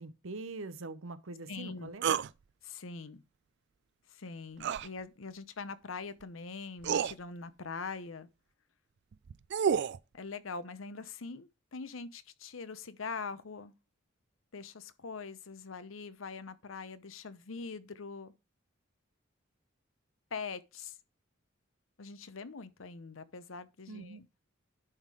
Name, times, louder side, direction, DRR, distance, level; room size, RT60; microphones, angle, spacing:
voice 1, 0.0-2.2 23.9-24.2, right 3 dB, 85° right, 0.8 m, -43 dB
voice 2, 1.5-1.9 2.6-3.2 4.1-8.3 10.1-13.7 14.5-18.3 20.3-21.0 22.0-24.3, left 4 dB, 85° left, 0.8 m, -43 dB
sound 1, 2.0-2.3 4.6-4.9 6.2-6.3 6.8-7.1 9.1-10.0, right 7 dB, 60° right, 0.4 m, -29 dB
11.0 x 3.7 x 4.8 m
head